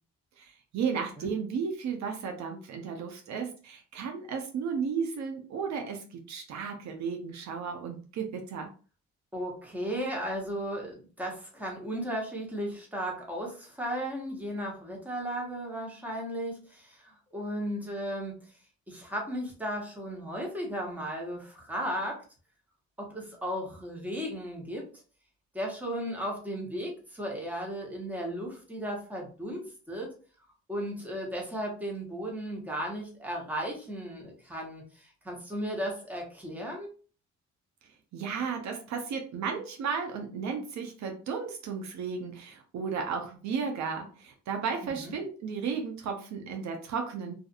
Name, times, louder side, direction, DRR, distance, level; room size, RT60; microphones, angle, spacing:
voice 1, 0.4-8.7 37.8-47.3, right 6 dB, 65° right, 4 dB, 0.6 m, -34 dB
voice 2, 9.3-18.4 18.9-22.2 23.0-24.8 25.5-30.1 30.7-36.9 44.8-45.1, equal, 5° right, -1 dB, 1.1 m, -35 dB
2.5 x 2.4 x 2.5 m, 0.39 s
cardioid pair, 90°, 30 cm